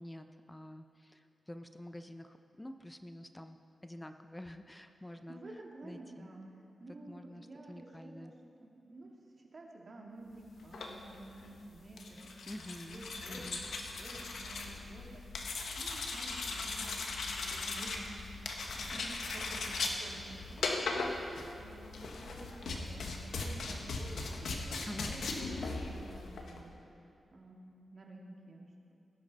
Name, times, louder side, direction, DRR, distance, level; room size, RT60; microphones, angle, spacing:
voice 1, 0.0-5.4 5.8-6.3 7.1-8.3 12.5-13.7 24.9-25.1, left 1 dB, 15° left, 7 dB, 0.7 m, -48 dB
voice 2, 5.0-6.4 6.8-8.3 8.6-12.5 12.9-18.2 18.7-24.8 25.1-28.9, right 2 dB, 55° right, -1 dB, 2.4 m, -51 dB
sound 1, 10.6-26.6, left 3 dB, 80° left, 1.3 m, -39 dB
19.0 x 11.0 x 4.1 m, 2.7 s
cardioid pair, 50°, 0 cm